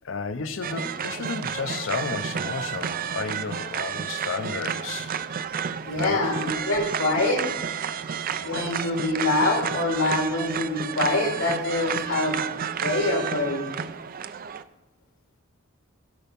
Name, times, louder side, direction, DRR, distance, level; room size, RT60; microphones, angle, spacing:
voice 1, 0.0-5.1 5.9-6.2, left 4 dB, 65° left, 12 dB, 0.7 m, -32 dB
sound 1, 0.6-14.6, right 7 dB, 45° right, 0.5 m, -31 dB
voice 2, 5.9-7.4 8.4-12.4 12.8-13.6, left 2 dB, 85° left, 2 dB, 2.3 m, -25 dB
16.5 x 5.8 x 5.3 m, 0.98 s
head